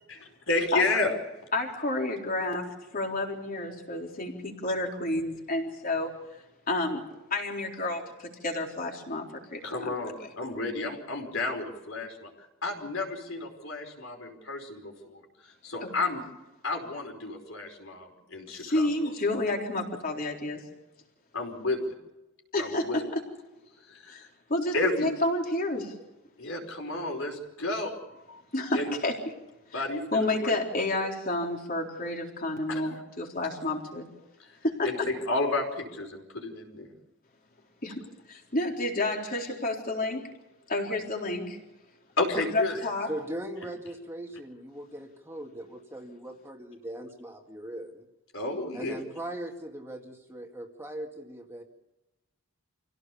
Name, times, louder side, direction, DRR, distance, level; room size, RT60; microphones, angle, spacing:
voice 1, 0.5-1.1 9.6-12.3 12.6-16.2 16.6-18.9 21.3-22.0 22.6-23.0 23.8-24.1 24.7-25.1 26.4-28.4 28.7-28.9 29.7-30.6 32.7-33.0 33.4-33.5 34.8-36.9 42.2-42.8 48.3-49.0, left 2 dB, 65° left, 3 dB, 5.2 m, -31 dB
voice 2, 1.5-6.1 6.7-7.0 7.3-9.9 15.8-15.9 18.5-20.6 22.5-23.2 24.1-24.7 25.0-25.9 28.5-29.2 29.7-29.8 30.1-34.0 34.6-34.9 37.8-38.0 38.3-40.2 40.7-41.6 42.4-43.1, left 2 dB, 40° left, 1 dB, 4.0 m, -30 dB
voice 3, 43.1-48.1 48.7-51.6, right 1 dB, 10° right, 2 dB, 2.1 m, -39 dB
27.0 x 17.0 x 7.1 m, 0.99 s
head